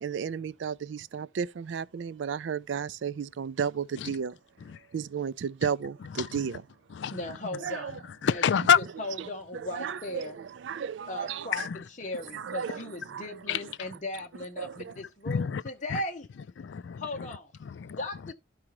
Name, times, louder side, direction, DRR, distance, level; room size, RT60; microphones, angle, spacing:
voice 1, 0.0-4.3 4.9-6.6 7.6-7.9 9.5-11.7 12.3-13.3 14.6-14.9, right 7 dB, 75° right, 0.4 m, -33 dB
voice 2, 6.0-6.6 6.9-7.4 8.1-8.8 11.5-11.8 13.5-13.9 14.8-15.6 15.9-16.0 16.6-18.3, left 7 dB, 70° left, 0.4 m, -29 dB
voice 3, 7.1-8.0 8.2-8.4 9.0-10.4 11.1-11.6 12.0-16.3 17.0-17.5 18.0-18.3, left 1 dB, 40° left, 0.9 m, -37 dB
14.0 x 4.9 x 3.0 m
head